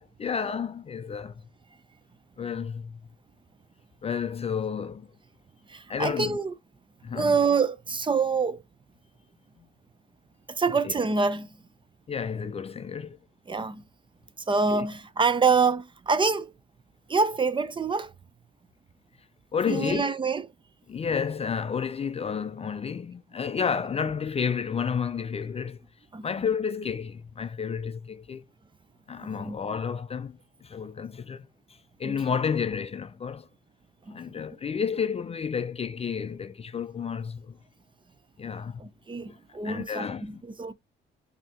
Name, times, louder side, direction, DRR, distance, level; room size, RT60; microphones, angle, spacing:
voice 1, 0.0-1.3 2.4-3.0 4.0-5.1 5.9-6.4 7.0-7.3 10.8-10.9 12.1-13.2 14.7-14.9 19.5-20.1 20.9-25.8 26.2-28.4 29.1-31.5 32.0-33.5 34.1-37.6 38.4-38.8 39.3-39.4 39.6-40.4, left 6 dB, 30° left, 0.4 m, -31 dB
voice 2, 5.7-6.5 7.1-8.6 10.5-11.6 13.5-13.8 14.5-16.5 17.1-18.1 19.7-20.4 26.1-26.3 29.2-29.6 32.0-32.2 34.1-34.4 38.8-40.7, right 4 dB, 25° right, 0.6 m, -26 dB
5.1 x 2.9 x 3.5 m
cardioid pair, 90°, 20 cm